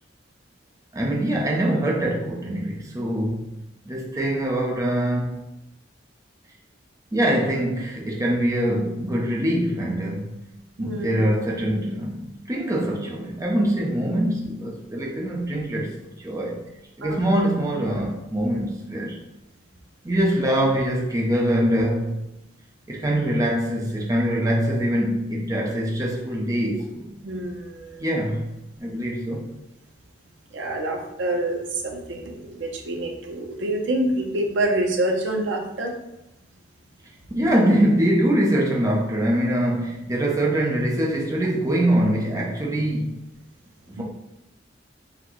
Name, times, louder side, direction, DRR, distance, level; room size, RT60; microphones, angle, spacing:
voice 1, 0.9-3.5 3.9-5.5 7.1-10.4 10.8-16.6 17.0-19.2 20.0-22.2 22.9-27.0 28.0-28.5 28.8-29.5 37.3-43.2 43.9-44.0, right 1 dB, 15° right, -2 dB, 0.5 m, -23 dB
voice 2, 10.8-11.3 17.0-17.3 27.2-28.1 30.5-35.9 44.0-44.1, right 1 dB, 75° right, 2 dB, 0.7 m, -27 dB
5.8 x 2.2 x 3.0 m, 0.90 s
head